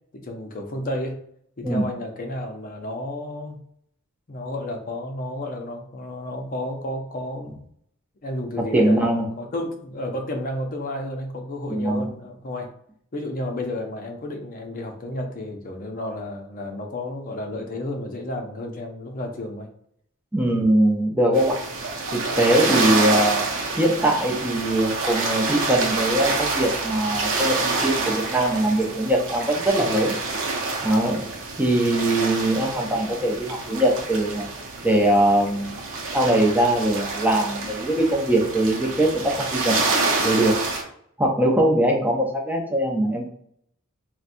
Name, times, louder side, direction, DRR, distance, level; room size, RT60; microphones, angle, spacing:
voice 1, 0.1-1.2 1.6-3.6 4.3-7.6 8.2-12.7 13.1-19.7, left 1 dB, 40° left, 3 dB, 0.6 m, -32 dB
voice 2, 8.7-9.3 11.7-12.1 20.3-21.6 22.4-23.5 23.8-30.1 30.8-31.2 31.6-34.5 34.8-35.7 36.1-39.7 40.2-40.6 41.2-43.3, right 1 dB, 10° right, -1 dB, 0.6 m, -21 dB
sound 1, 21.3-40.8, right 3 dB, 60° right, 0.7 m, -27 dB
4.0 x 2.1 x 2.6 m, 0.68 s
head